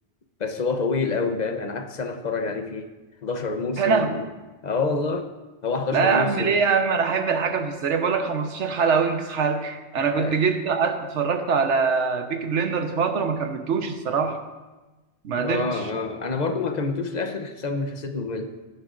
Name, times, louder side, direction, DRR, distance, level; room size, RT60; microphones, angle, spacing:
voice 1, 0.4-2.9 3.2-4.3 4.6-5.3 5.6-6.6 10.1-10.4 15.4-18.6, left 4 dB, 40° left, 7 dB, 0.8 m, -27 dB
voice 2, 3.8-4.1 5.9-14.4 15.2-15.8, right 5 dB, 75° right, 6 dB, 1.2 m, -23 dB
16.0 x 11.0 x 2.5 m, 1.2 s
omnidirectional pair, 1.2 m